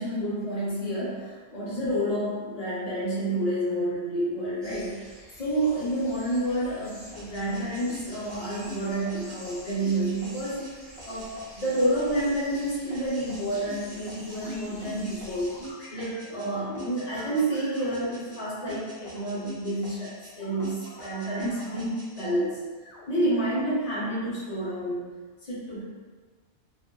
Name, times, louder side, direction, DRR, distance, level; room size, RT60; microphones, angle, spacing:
voice 1, 0.0-10.6 11.0-15.6 15.9-22.6 23.1-25.1 25.4-25.8, right 1 dB, 35° left, -8 dB, 1.0 m, -29 dB
sound 1, 4.6-15.7, equal, ahead, 1.2 m, -48 dB
sound 2, 7.1-16.5 16.7-18.4 18.7-20.3 20.6-22.3, right 1 dB, 30° right, 0.7 m, -44 dB
sound 3, 14.3-14.6 15.3-18.5 19.0-19.5 20.4-21.8 22.8-24.2, left 2 dB, 80° left, 0.9 m, -49 dB
2.6 x 2.5 x 2.2 m, 1.4 s
omnidirectional pair, 1.2 m